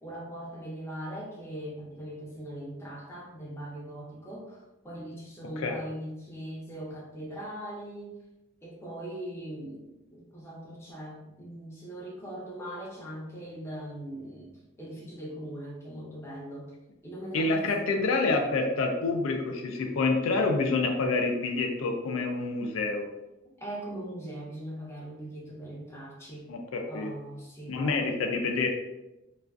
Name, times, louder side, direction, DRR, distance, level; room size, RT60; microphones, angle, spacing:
voice 1, 0.0-8.2 8.6-16.7 17.0-17.7 23.6-26.5 26.9-28.1, right 1 dB, 15° left, -5 dB, 0.5 m, -40 dB
voice 2, 17.3-23.1 26.5-27.1 27.7-28.7, left 3 dB, 85° left, 3 dB, 0.4 m, -27 dB
2.3 x 2.3 x 2.3 m, 0.97 s
head